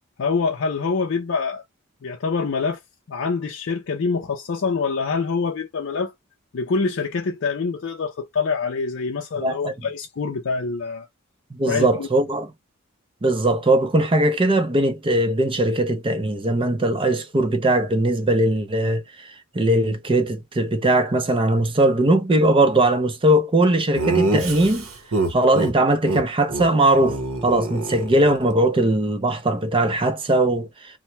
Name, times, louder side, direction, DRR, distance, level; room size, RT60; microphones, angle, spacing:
voice 1, 0.2-1.6 2.0-2.8 3.1-6.1 6.5-11.1 11.7-12.1, left 4 dB, 60° left, 0.5 m, -25 dB
voice 2, 11.5-12.5 13.2-19.0 19.5-24.8 25.3-30.7, right 1 dB, 25° right, 0.5 m, -20 dB
Laughter, 23.9-25.7 26.0-26.2 26.5-26.7 26.9-28.5, right 2 dB, 75° right, 0.8 m, -25 dB
2.9 x 2.1 x 3.1 m
head